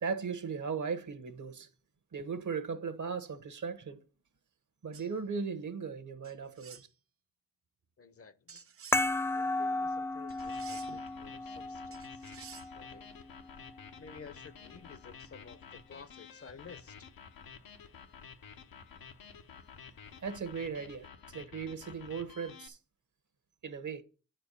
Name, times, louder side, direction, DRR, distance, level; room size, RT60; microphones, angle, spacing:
voice 1, 0.0-1.7 2.1-4.0 4.8-6.9 20.2-22.8 23.6-24.0, right 5 dB, 60° right, 1.1 m, -37 dB
sound 1, 4.9-5.1 6.2-6.9 8.5-9.1 10.3-11.1 11.9-12.7, right 7 dB, 40° right, 0.6 m, -51 dB
voice 2, 8.0-8.6 9.3-12.4 12.7-13.1 14.0-17.1, left 5 dB, 40° left, 0.7 m, -53 dB
sound 2, 8.9-14.0, left 2 dB, 10° left, 0.4 m, -35 dB
sound 3, 10.3-22.7, left 6 dB, 90° left, 0.9 m, -52 dB
9.2 x 4.4 x 6.8 m
cardioid pair, 65°, 34 cm